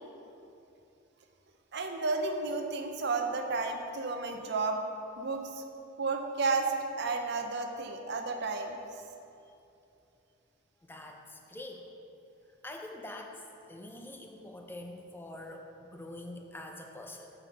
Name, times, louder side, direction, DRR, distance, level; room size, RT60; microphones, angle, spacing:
voice 1, 1.7-4.8 5.2-5.6 6.0-6.7 7.0-8.8, right 3 dB, 55° right, 4 dB, 0.6 m, -32 dB
voice 2, 10.8-11.8 12.6-17.3, left 1 dB, 10° left, 2 dB, 0.5 m, -45 dB
5.7 x 5.0 x 6.4 m, 2.8 s
head